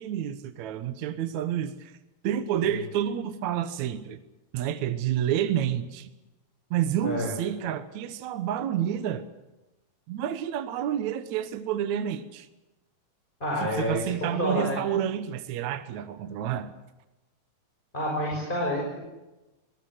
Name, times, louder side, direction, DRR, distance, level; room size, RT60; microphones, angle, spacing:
voice 1, 0.0-1.9 2.2-4.2 4.5-6.1 6.7-9.3 10.1-12.5 13.6-16.7, right 10 dB, 70° right, 10 dB, 1.8 m, -29 dB
voice 2, 13.4-14.8 17.9-19.0, equal, 10° left, -1 dB, 5.9 m, -29 dB
22.5 x 19.5 x 7.9 m, 1.0 s
omnidirectional pair, 4.5 m